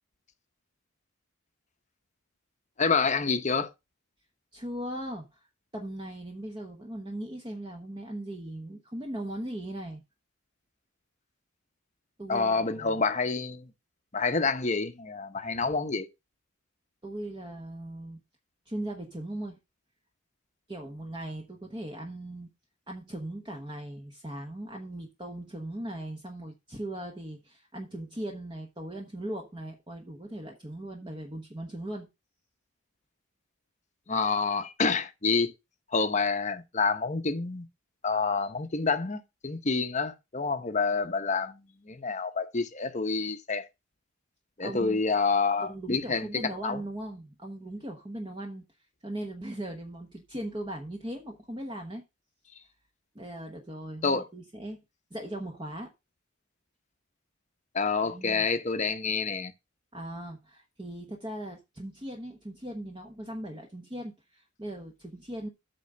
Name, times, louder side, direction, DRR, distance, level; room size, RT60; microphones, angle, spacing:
voice 1, 2.8-3.7 12.3-13.7 14.1-16.1 34.1-35.5 35.9-37.7 38.0-41.6 41.9-43.6 44.6-46.8 54.0-54.3 57.7-59.5, left 4 dB, 35° left, 0.9 m, -28 dB
voice 2, 4.5-5.4 5.7-10.0 12.2-13.0 17.0-18.2 18.7-19.6 20.7-22.5 22.9-32.1 44.6-45.0 45.6-48.6 49.0-52.0 53.1-54.8 55.1-55.9 58.0-58.5 59.9-65.5, right 1 dB, 20° right, 1.1 m, -39 dB
8.4 x 3.8 x 6.7 m
head